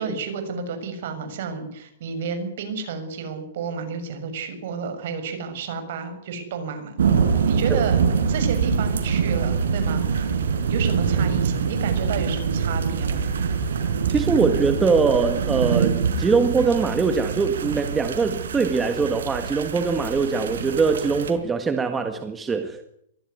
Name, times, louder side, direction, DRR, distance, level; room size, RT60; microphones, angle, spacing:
voice 1, 0.0-7.0 7.5-8.0 8.3-10.3 10.7-13.3, right 5 dB, 55° right, 7 dB, 6.8 m, -31 dB
sound 1, 7.0-21.3, right 6 dB, 85° right, 5.0 m, -24 dB
voice 2, 14.1-22.8, right 5 dB, 10° right, 7 dB, 1.7 m, -22 dB
23.0 x 15.5 x 9.7 m, 0.73 s
hypercardioid pair, 160°, 0 cm